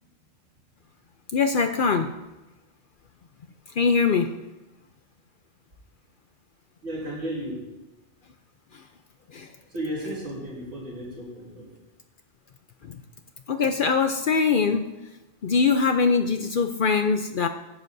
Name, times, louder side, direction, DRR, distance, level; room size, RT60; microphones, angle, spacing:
voice 1, 1.3-2.1 3.8-4.3 9.3-9.5 12.9-13.0 13.5-14.9 15.4-17.5, left 5 dB, 55° left, 7 dB, 0.6 m, -22 dB
voice 2, 6.8-7.6 9.7-11.7, right 1 dB, 80° right, -5 dB, 4.2 m, -33 dB
18.0 x 11.0 x 2.7 m, 1.0 s
omnidirectional pair, 1.3 m